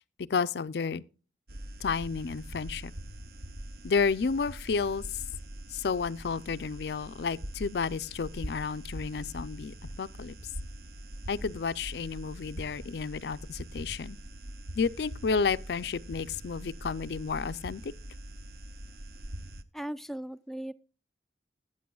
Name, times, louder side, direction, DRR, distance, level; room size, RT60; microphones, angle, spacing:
voice 1, 0.3-1.0 1.8-2.9 3.8-5.0 5.7-10.3 11.3-14.2 14.8-17.9, left 5 dB, 70° left, 0.4 m, -31 dB
sound 1, 1.5-19.6, right 1 dB, 55° right, 0.7 m, -43 dB
voice 2, 19.7-20.7, right 1 dB, ahead, 0.3 m, -37 dB
14.5 x 8.8 x 2.3 m
head